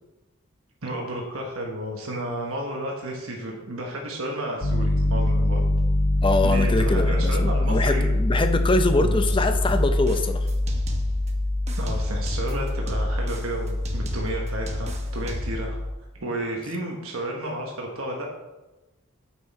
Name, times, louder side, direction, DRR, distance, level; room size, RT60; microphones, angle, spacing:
voice 1, 0.8-5.6 6.4-8.2 9.0-9.2 11.8-15.8 16.2-18.3, right 1 dB, 75° right, 0 dB, 1.2 m, -32 dB
Piano, 4.6-15.9, left 1 dB, 80° left, 1.0 m, -24 dB
voice 2, 6.2-10.5, left 2 dB, 25° left, 8 dB, 0.5 m, -24 dB
sound 1, 9.3-11.3 11.7-15.7, right 1 dB, 30° right, 1.0 m, -35 dB
9.4 x 6.1 x 4.2 m, 1.1 s
head